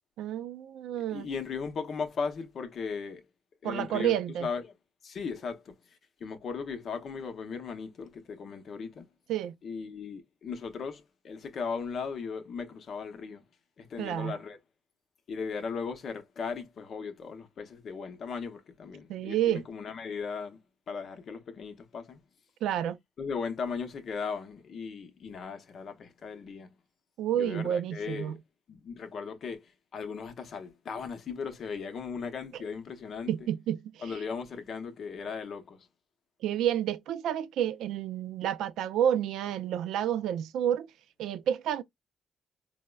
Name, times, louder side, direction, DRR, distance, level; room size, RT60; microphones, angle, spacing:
voice 1, 0.2-1.3 3.6-4.5 9.3-9.5 14.0-14.4 19.1-19.7 22.6-23.0 27.2-28.4 32.5-32.6 33.3-34.2 36.4-40.9 41.2-41.8, right 10 dB, 85° right, 0.3 m, -30 dB
voice 2, 1.1-3.2 3.6-4.2 4.4-4.6 5.0-5.8 6.2-9.1 9.6-13.4 13.8-14.6 15.3-20.6 20.9-22.2 23.2-26.7 27.4-28.4 28.7-33.3 34.0-35.9, left 5 dB, 55° left, 0.7 m, -37 dB
4.0 x 2.0 x 2.2 m
cardioid pair, 90°, 0 cm